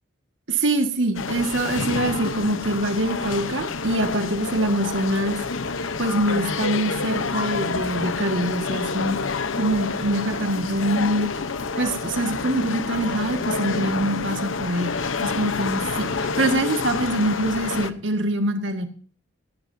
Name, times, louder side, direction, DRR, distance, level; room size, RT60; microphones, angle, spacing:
voice 1, 0.5-5.4 6.0-9.2 9.6-11.3 11.8-14.9 15.2-18.8, right 1 dB, 65° right, 5 dB, 1.9 m, -24 dB
sound 1, 1.1-17.9, left 4 dB, 85° left, 1.0 m, -28 dB
18.5 x 15.5 x 2.8 m, 0.43 s
head